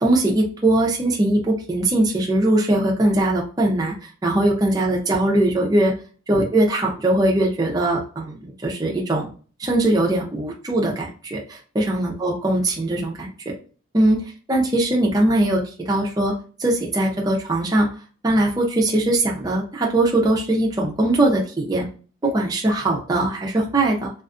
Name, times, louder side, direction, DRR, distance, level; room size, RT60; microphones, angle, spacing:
voice 1, 0.0-3.9 4.2-5.9 6.3-9.3 9.6-13.3 13.9-14.2 14.5-16.3 16.6-17.9 18.2-21.9 22.2-24.1, right 1 dB, 20° right, -1 dB, 0.5 m, -20 dB
2.4 x 2.4 x 2.4 m, 0.39 s
head